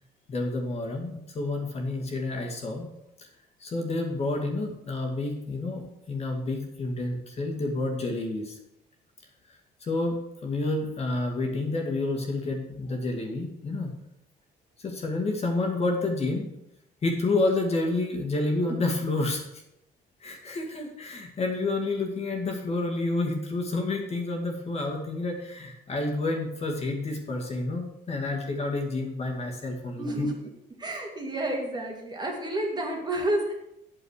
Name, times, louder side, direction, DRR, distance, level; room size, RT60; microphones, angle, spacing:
voice 1, 0.3-2.9 3.2-3.3 3.6-8.6 9.5-13.9 14.8-16.5 17.0-19.4 20.2-30.3, left 2 dB, 40° left, 2 dB, 2.2 m, -29 dB
voice 2, 30.0-30.3 30.8-33.5, right 1 dB, 25° right, 1 dB, 2.4 m, -30 dB
8.6 x 7.1 x 6.6 m, 0.85 s
cardioid pair, 110°, 17 cm